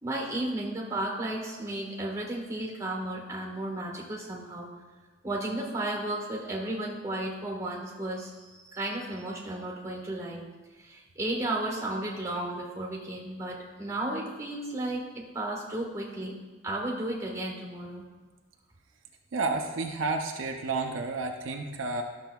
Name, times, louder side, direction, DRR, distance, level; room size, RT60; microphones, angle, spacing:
voice 1, 0.0-4.7 5.2-10.4 10.8-16.3 16.6-18.0, right 1 dB, 15° right, -2 dB, 1.4 m, -34 dB
voice 2, 19.3-22.0, right 3 dB, 70° right, 3 dB, 0.5 m, -31 dB
12.0 x 6.7 x 2.3 m, 1.3 s
head